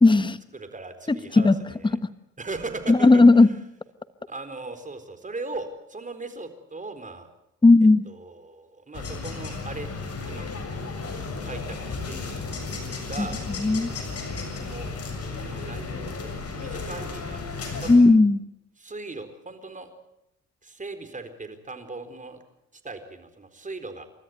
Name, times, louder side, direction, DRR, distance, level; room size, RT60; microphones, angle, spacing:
voice 1, 0.0-0.4 1.1-1.5 2.9-3.5 7.6-8.1 13.2-13.9 17.9-18.4, left 3 dB, 15° left, 13 dB, 1.3 m, -16 dB
voice 2, 0.5-2.0 2.4-3.5 4.3-7.3 8.1-9.9 10.3-10.4 11.4-12.4 12.8-13.4 14.6-15.0 15.2-17.4 17.8-18.1 18.8-19.9 20.6-22.4 22.8-24.1, right 3 dB, 25° right, 8 dB, 4.1 m, -38 dB
sound 1, 8.9-18.0, left 4 dB, 55° left, 7.2 m, -34 dB
30.0 x 13.5 x 9.4 m, 0.82 s
cardioid pair, 90°, 30 cm